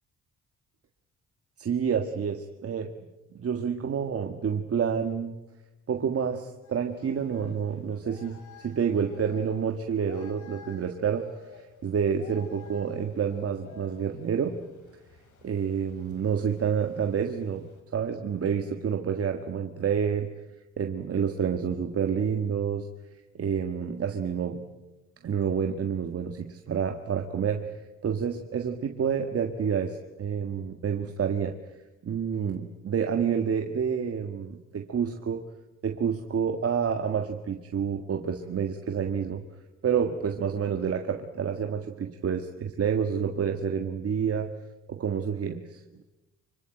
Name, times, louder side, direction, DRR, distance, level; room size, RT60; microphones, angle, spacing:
voice 1, 1.6-2.9 3.3-5.3 5.9-11.3 11.5-14.6 15.4-17.6 17.9-20.3 20.8-22.9 23.3-24.6 25.2-31.6 32.0-35.4 35.8-39.4 39.8-44.5 44.9-45.8, right 7 dB, 50° right, 6 dB, 1.7 m, -28 dB
sound 1, 6.6-17.8, left 6 dB, 75° left, 5.6 m, -53 dB
25.0 x 24.5 x 9.0 m, 1.0 s
cardioid pair, 90°, 30 cm